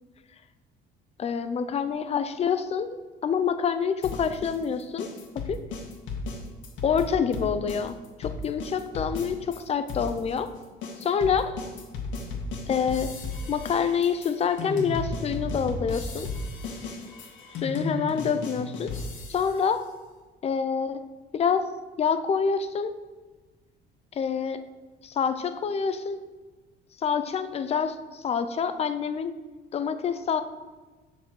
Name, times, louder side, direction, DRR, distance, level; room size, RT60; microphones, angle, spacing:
voice 1, 1.2-2.9 3.2-5.1 5.5-5.6 6.8-10.5 11.0-11.6 12.7-13.2 13.5-16.3 17.6-19.0 19.3-19.9 20.4-21.0 21.3-21.7 22.0-22.9 24.1-24.6 25.0-26.2 27.0-29.3 29.7-30.4, left 6 dB, 30° left, 10 dB, 0.6 m, -27 dB
sound 1, 4.0-9.6 9.9-19.6, left 3 dB, 70° left, 1.7 m, -35 dB
7.5 x 6.1 x 6.3 m, 1.3 s
cardioid pair, 155°, 20 cm